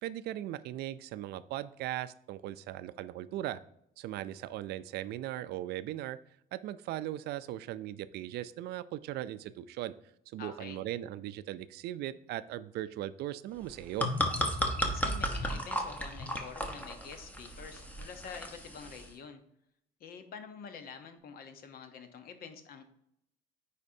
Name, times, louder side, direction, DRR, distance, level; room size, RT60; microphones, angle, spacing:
voice 1, 0.0-3.6 4.0-6.2 6.5-9.9 10.3-14.1, right 13 dB, 75° right, 15 dB, 0.4 m, -38 dB
voice 2, 10.4-10.8 14.7-19.4 20.0-22.8, left 6 dB, 60° left, 8 dB, 0.9 m, -47 dB
sound 1, 13.6-19.1, equal, 10° left, 1.0 m, -34 dB
9.8 x 4.2 x 2.7 m, 0.75 s
cardioid pair, 110°, 17 cm